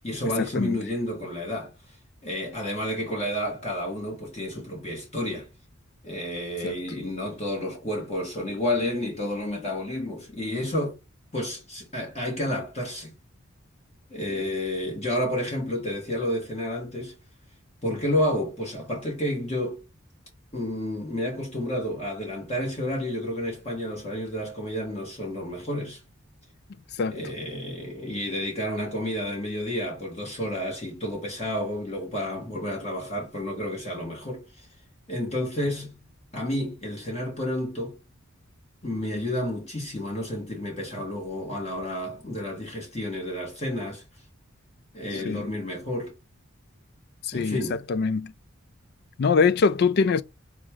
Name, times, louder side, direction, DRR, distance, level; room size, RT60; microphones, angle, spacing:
voice 1, 0.0-2.0 2.2-5.5 6.0-11.0 11.3-13.1 14.1-17.2 17.8-19.8 20.5-26.0 27.1-34.7 35.1-36.0 36.3-38.0 38.8-44.0 44.9-46.1 47.3-47.8, left 1 dB, 30° left, 1.5 m, -30 dB
voice 2, 45.1-45.4 47.3-47.6 47.9-48.3 49.2-50.2, left 5 dB, 50° left, 0.4 m, -23 dB
6.3 x 2.4 x 3.1 m
head